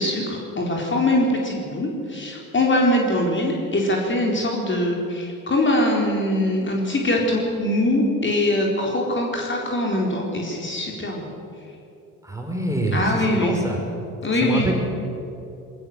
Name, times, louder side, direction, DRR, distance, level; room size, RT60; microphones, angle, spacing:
voice 1, 0.0-11.3 12.9-13.5 14.2-14.7, left 1 dB, 25° left, -1 dB, 4.4 m, -22 dB
voice 2, 12.2-13.8 14.4-14.7, right 1 dB, 5° right, 1 dB, 5.3 m, -25 dB
23.0 x 19.0 x 7.9 m, 2.7 s
figure-of-eight pair, 55°, 44 cm